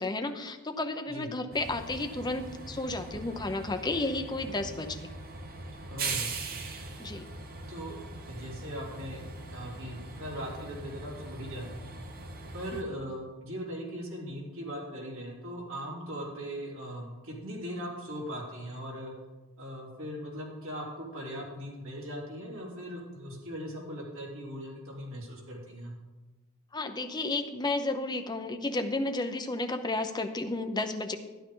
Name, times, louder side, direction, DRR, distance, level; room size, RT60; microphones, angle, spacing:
voice 1, 0.0-5.1 7.0-7.3 12.7-12.8 26.7-31.2, left 2 dB, 20° left, 6 dB, 0.7 m, -32 dB
Train, 1.5-12.8, right 3 dB, 45° right, 1.1 m, -41 dB
voice 2, 5.9-6.3 7.7-8.0 8.3-11.9 12.5-19.1 19.6-25.9, equal, 65° right, -3 dB, 3.5 m, -39 dB
12.5 x 11.0 x 3.8 m, 1.2 s
head